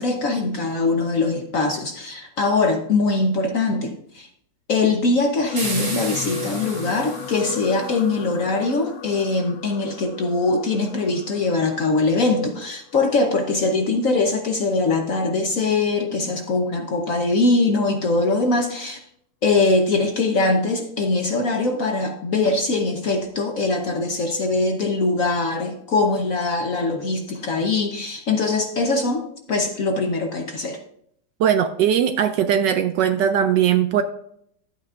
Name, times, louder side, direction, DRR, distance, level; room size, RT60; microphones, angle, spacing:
voice 1, 0.0-4.3 4.7-19.0 19.4-30.8, left 3 dB, 55° left, 3 dB, 1.0 m, -22 dB
sound 1, 5.5-13.9 14.7-14.9 15.2-15.3, left 9 dB, 75° left, 1.5 m, -37 dB
sound 2, 5.6-8.0, right 2 dB, 35° right, 2.1 m, -33 dB
voice 2, 31.4-34.0, right 9 dB, 75° right, 9 dB, 1.1 m, -19 dB
11.5 x 8.7 x 2.5 m, 0.69 s
omnidirectional pair, 2.2 m